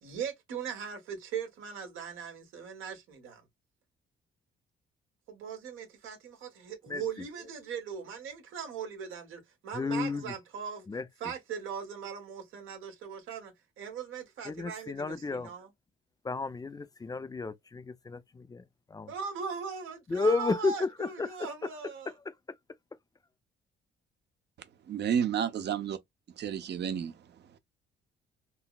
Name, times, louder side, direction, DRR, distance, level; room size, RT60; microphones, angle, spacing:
voice 1, 0.0-3.4 5.3-10.9 11.2-15.7 19.1-22.1, right 6 dB, 85° right, 1.4 m, -39 dB
voice 2, 9.7-10.3 10.9-11.1 14.5-15.5 16.2-19.1 20.1-21.3, left 3 dB, 20° left, 0.4 m, -32 dB
voice 3, 24.9-26.0 26.4-27.1, right 8 dB, 60° right, 0.7 m, -30 dB
3.8 x 2.0 x 2.3 m
cardioid pair, 90°, 20 cm